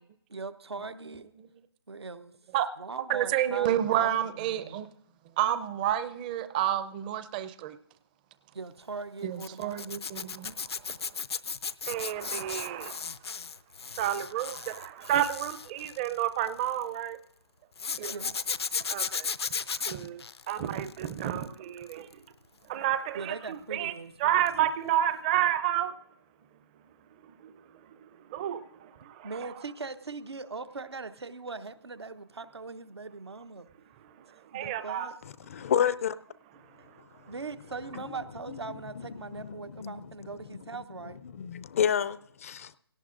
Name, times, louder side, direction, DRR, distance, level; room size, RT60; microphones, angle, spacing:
voice 1, 0.3-1.3 1.9-2.3 2.8-4.9 8.5-9.8 18.1-18.3 23.1-24.3 29.2-33.7 34.5-35.2 37.3-41.2, right 4 dB, 85° right, 0.9 m, -40 dB
voice 2, 3.1-4.9 5.4-7.8 9.2-10.7 11.9-13.1 14.0-17.2 18.0-18.1 18.9-19.3 19.9-22.1 22.7-23.9 24.2-25.9 27.4-27.5 28.3-28.7 34.5-35.2, right 11 dB, 20° right, 0.5 m, -30 dB
Zipper (clothing), 9.4-16.8 17.8-21.4 21.8-22.1 24.5-24.6 24.9-25.0, left 5 dB, 80° left, 0.6 m, -35 dB
voice 3, 35.5-36.1 39.4-40.0 41.3-42.7, left 9 dB, 35° left, 0.4 m, -29 dB
18.5 x 17.5 x 2.5 m
figure-of-eight pair, 150°, 13 cm